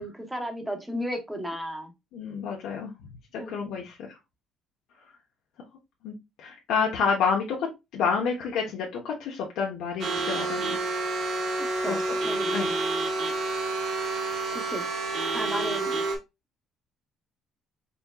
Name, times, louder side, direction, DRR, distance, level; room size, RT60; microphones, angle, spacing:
voice 1, 0.0-1.9 3.4-3.5 11.8-12.6 14.5-14.8 15.3-16.0, equal, 5° right, 4 dB, 0.9 m, -34 dB
voice 2, 2.1-2.9 3.5-3.9 6.0-10.8 11.8-12.0 12.5-12.7, left 5 dB, 75° left, -1 dB, 1.0 m, -29 dB
sound 1, 10.0-16.2, right 3 dB, 55° right, 1.4 m, -29 dB
4.3 x 4.2 x 2.3 m, 0.23 s
cardioid pair, 160°, 0 cm